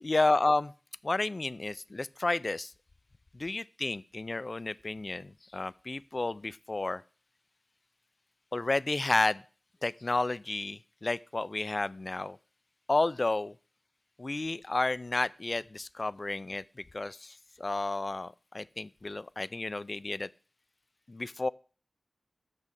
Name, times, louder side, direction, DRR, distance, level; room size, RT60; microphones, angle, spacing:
voice 1, 0.0-0.7 1.0-2.7 3.3-7.0 8.5-9.4 9.8-12.4 12.9-13.5 14.2-16.6 16.9-20.3 21.1-21.5, left 2 dB, 45° left, 0.4 m, -31 dB
7.3 x 6.1 x 6.4 m
wide cardioid pair, 65°, 0 cm